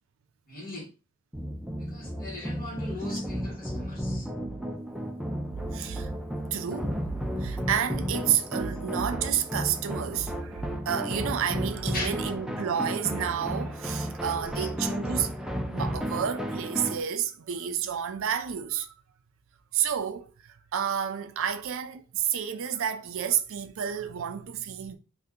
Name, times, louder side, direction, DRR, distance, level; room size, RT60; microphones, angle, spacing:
voice 1, 0.5-0.9 1.8-4.3 11.9-12.1 14.4-14.7, left 2 dB, 40° left, 1.4 m, -39 dB
sound 1, 1.3-17.0, equal, 5° right, 0.4 m, -33 dB
voice 2, 5.7-6.1 6.5-7.0 7.4-15.4 15.7-18.9 19.7-25.0, right 8 dB, 65° right, 0.4 m, -30 dB
2.7 x 2.5 x 3.6 m
head